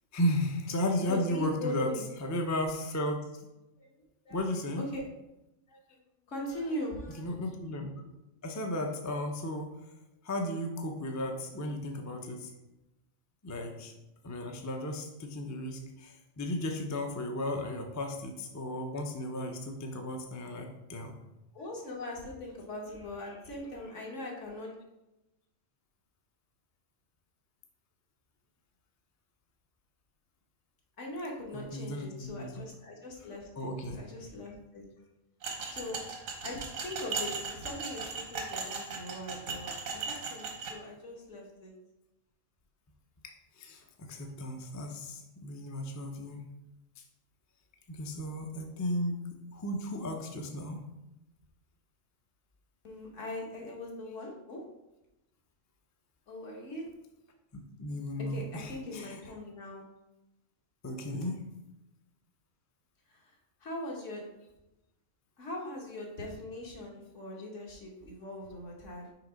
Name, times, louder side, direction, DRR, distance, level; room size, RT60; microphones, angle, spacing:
voice 1, 0.1-3.2 4.3-4.9 7.2-7.9 8.4-9.7 10.2-12.5 13.4-13.9 14.2-21.2 31.5-32.6 33.6-34.1 43.6-46.4 47.0-47.1 47.9-49.2 49.5-50.8 57.8-59.3 60.8-61.4, left 1 dB, 20° left, 2 dB, 0.4 m, -34 dB
voice 2, 1.1-2.0 3.8-3.9 4.2-4.4 4.8-5.0 5.7-6.0 6.3-7.3 21.5-24.7 31.0-34.8 35.6-36.0 36.4-41.7 52.8-54.6 56.3-56.9 58.3-59.8 63.1-64.2 65.4-69.1, left 1 dB, 65° left, -1 dB, 1.6 m, -41 dB
sound 1, 35.4-40.7, right 4 dB, 80° right, 1.4 m, -37 dB
5.9 x 3.4 x 5.1 m, 0.95 s
omnidirectional pair, 1.4 m